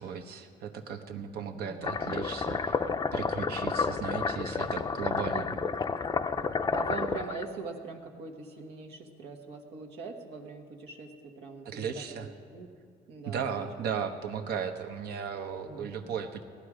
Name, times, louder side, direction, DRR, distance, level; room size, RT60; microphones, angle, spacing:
voice 1, 0.0-2.8 3.1-5.6 11.6-12.3 13.3-16.4, right 7 dB, 70° right, 5 dB, 1.1 m, -36 dB
voice 2, 1.5-2.0 5.3-5.7 6.7-12.7 13.1-13.7 15.7-16.0, right 4 dB, 85° right, 3 dB, 1.5 m, -42 dB
sound 1, 1.8-7.4, left 5 dB, 25° left, 0.5 m, -30 dB
18.0 x 11.5 x 5.0 m, 2.2 s
cardioid pair, 110°, 17 cm